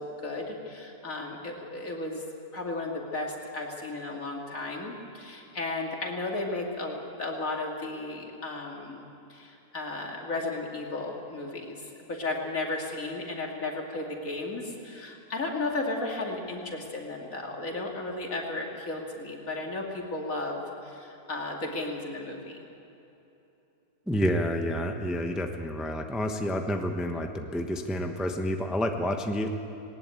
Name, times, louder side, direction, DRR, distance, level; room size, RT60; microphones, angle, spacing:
voice 1, 0.0-2.2 2.5-9.0 9.3-22.6, left 2 dB, 60° left, 0 dB, 3.1 m, -34 dB
voice 2, 24.1-29.5, equal, ahead, 4 dB, 0.9 m, -29 dB
20.0 x 18.5 x 9.2 m, 2.9 s
omnidirectional pair, 1.6 m